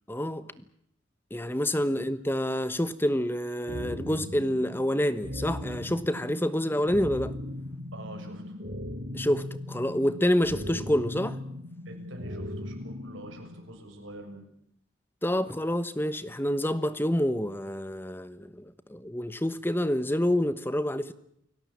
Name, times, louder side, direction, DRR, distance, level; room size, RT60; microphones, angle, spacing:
voice 1, 0.1-0.5 1.3-7.3 9.1-11.4 15.2-18.6 18.9-21.1, equal, 10° left, 1.1 m, -27 dB
sound 1, 3.7-13.6, left 1 dB, 50° right, 7.2 m, -38 dB
voice 2, 7.9-8.6 11.9-14.5, right 1 dB, 75° right, 6.9 m, -45 dB
29.5 x 17.5 x 8.6 m
head